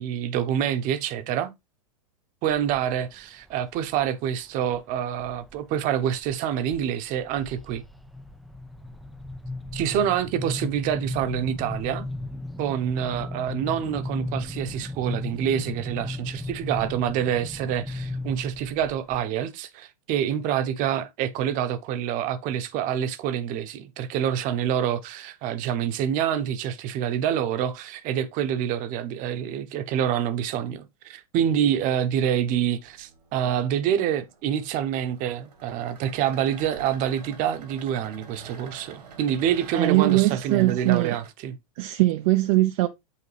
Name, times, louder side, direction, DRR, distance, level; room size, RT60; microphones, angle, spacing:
voice 1, 0.0-1.5 2.4-7.8 9.7-12.1 12.6-41.6, right 9 dB, 40° right, 0.9 m, -27 dB
sound 1, 2.5-3.1 3.5-4.1 4.7-5.6 6.0-6.3 6.7-19.2, left 2 dB, ahead, 0.4 m, -36 dB
sound 2, 31.6-41.3, right 5 dB, 80° right, 1.9 m, -47 dB
voice 2, 39.7-41.2 41.8-42.9, right 18 dB, 55° right, 0.6 m, -21 dB
8.5 x 3.5 x 3.3 m
hypercardioid pair, 120°, 20 cm